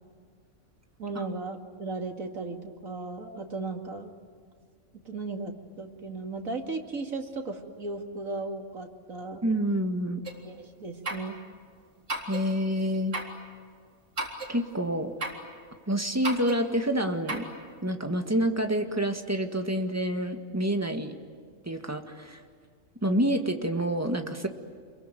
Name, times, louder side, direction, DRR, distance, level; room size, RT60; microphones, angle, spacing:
voice 1, 1.0-4.1 5.0-9.4 10.4-11.4, right 3 dB, 75° right, 4 dB, 2.8 m, -36 dB
voice 2, 9.4-10.2 12.3-13.2 14.5-15.1 15.9-17.5 17.8-21.2 21.7-22.4 23.0-24.5, equal, 10° right, 5 dB, 1.9 m, -28 dB
sound 1, 10.2-10.4 11.0-11.3 12.1-12.5 13.1-13.4 14.2-14.6 15.2-15.5 16.2-16.6 17.3-17.5, right 2 dB, 60° right, 4.1 m, -34 dB
28.5 x 22.5 x 9.3 m, 2.1 s
omnidirectional pair, 1.4 m